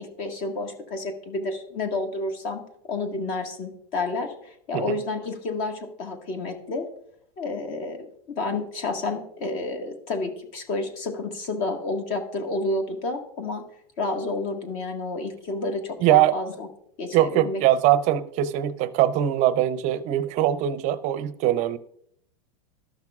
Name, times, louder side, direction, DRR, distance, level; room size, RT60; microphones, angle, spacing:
voice 1, 0.0-2.6 2.9-6.9 7.4-8.1 8.3-13.6 14.0-16.7 17.0-17.6, left 2 dB, 50° left, 1.6 m, -30 dB
voice 2, 16.0-16.4 17.1-21.8, right 12 dB, 40° right, 0.5 m, -22 dB
14.0 x 5.9 x 2.3 m
supercardioid pair, 140°, 20 cm